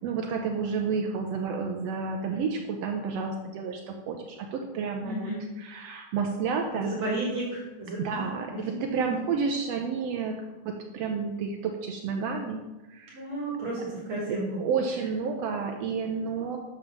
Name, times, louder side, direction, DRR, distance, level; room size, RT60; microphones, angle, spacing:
voice 1, 0.0-5.3 5.6-6.9 8.0-10.4 10.6-12.6 12.9-13.2 14.3-16.6, right 5 dB, 90° right, 3 dB, 1.4 m, -30 dB
voice 2, 5.0-5.4 6.8-9.2 13.1-14.6, right 2 dB, 55° right, -4 dB, 3.2 m, -33 dB
7.1 x 7.0 x 6.1 m, 1.1 s
omnidirectional pair, 3.8 m